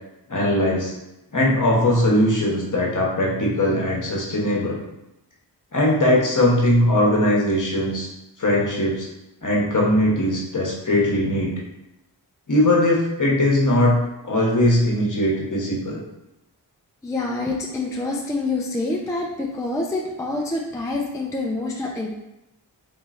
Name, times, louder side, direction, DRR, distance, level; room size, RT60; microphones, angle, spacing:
voice 1, 0.3-0.9 1.3-4.8 5.7-8.1 8.4-9.1 9.4-11.6 12.5-14.0 14.2-16.0, left 1 dB, 45° left, -3 dB, 1.0 m, -20 dB
voice 2, 17.0-22.2, left 2 dB, 10° left, -1 dB, 0.3 m, -26 dB
3.7 x 3.0 x 2.5 m, 0.93 s
wide cardioid pair, 55°, 43 cm